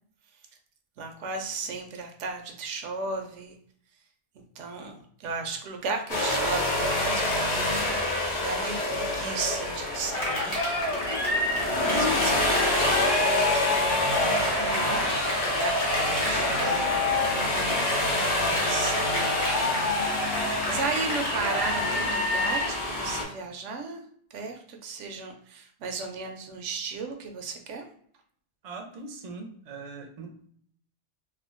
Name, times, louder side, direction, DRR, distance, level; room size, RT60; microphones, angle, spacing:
voice 1, 1.0-3.5 4.6-10.6 11.8-17.0 18.1-19.7 20.7-24.0 24.3-27.9, right 4 dB, 90° right, 4 dB, 0.9 m, -35 dB
sound 1, 6.1-23.2, left 1 dB, 70° left, 1.0 m, -27 dB
Cheering, 10.1-22.8, left 2 dB, 45° left, 1.0 m, -30 dB
voice 2, 17.3-17.8 28.6-30.5, right 3 dB, 50° right, 3 dB, 0.4 m, -40 dB
3.5 x 2.2 x 2.4 m, 0.63 s
omnidirectional pair, 1.2 m